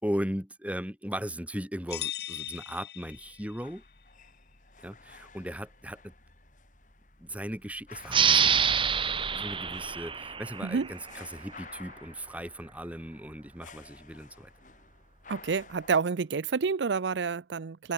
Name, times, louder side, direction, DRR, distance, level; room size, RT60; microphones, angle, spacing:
voice 1, 0.0-3.8 4.8-6.1 7.2-8.6 9.3-14.5, equal, 10° right, 5.1 m, -37 dB
sound 1, 1.9-3.7, left 13 dB, 60° left, 1.6 m, -39 dB
sound 2, 3.0-15.9, left 4 dB, 45° left, 5.3 m, -53 dB
sound 3, 8.1-11.3, right 7 dB, 30° right, 1.6 m, -26 dB
voice 2, 15.3-17.9, right 5 dB, 80° right, 0.5 m, -29 dB
open air
head